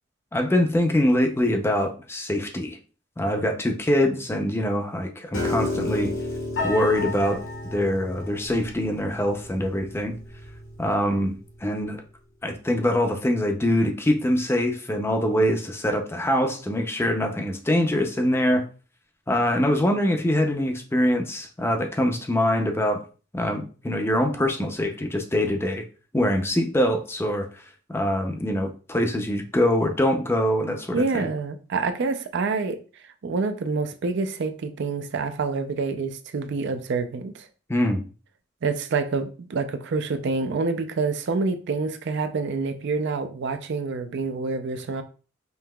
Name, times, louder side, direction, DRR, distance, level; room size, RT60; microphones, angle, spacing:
voice 1, 0.3-2.8 3.2-6.1 6.6-7.4 7.7-10.2 10.8-11.3 11.6-12.0 12.4-18.7 19.3-23.0 23.3-25.9 26.1-27.5 27.9-31.3 37.7-38.0, left 1 dB, 10° left, 0.5 m, -24 dB
Piano, 5.3-11.5, left 2 dB, 85° left, 1.6 m, -32 dB
voice 2, 30.9-32.8 33.2-37.5 38.6-45.0, right 4 dB, 60° right, 0.4 m, -27 dB
5.4 x 2.8 x 2.2 m
head